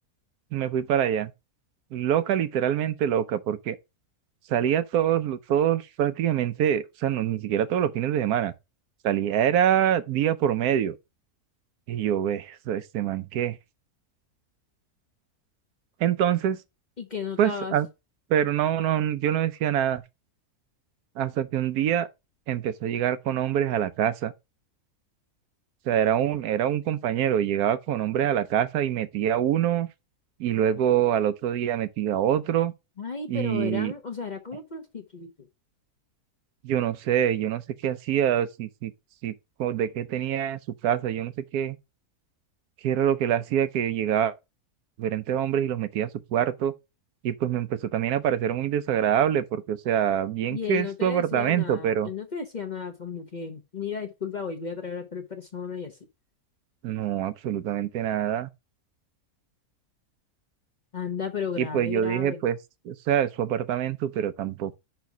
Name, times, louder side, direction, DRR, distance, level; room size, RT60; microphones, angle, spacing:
voice 1, 0.5-1.3 1.9-3.8 4.5-8.5 9.0-10.9 11.9-13.6 16.0-16.6 17.4-17.9 18.3-20.0 21.2-22.1 22.5-24.3 25.9-29.9 30.4-32.7 33.3-33.9 36.6-38.9 39.2-39.3 39.6-41.8 42.8-44.3 45.0-46.7 47.2-52.1 56.8-58.5 61.6-62.6 62.8-64.7, right 10 dB, 85° right, 1.2 m, -25 dB
voice 2, 17.0-17.7 33.0-35.3 50.5-56.0 60.9-62.4, left 6 dB, 40° left, 0.7 m, -34 dB
5.2 x 4.6 x 5.8 m
omnidirectional pair, 1.6 m